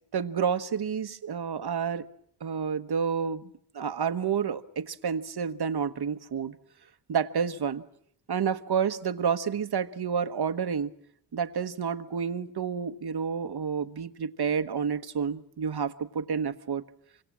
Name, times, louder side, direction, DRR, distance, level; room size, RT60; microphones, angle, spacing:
voice 1, 0.1-2.0 2.4-6.5 7.1-7.8 8.3-10.9 11.3-16.8, right 7 dB, 60° right, 11 dB, 1.3 m, -29 dB
27.0 x 25.0 x 7.5 m, 0.68 s
wide cardioid pair, 140°, 45 cm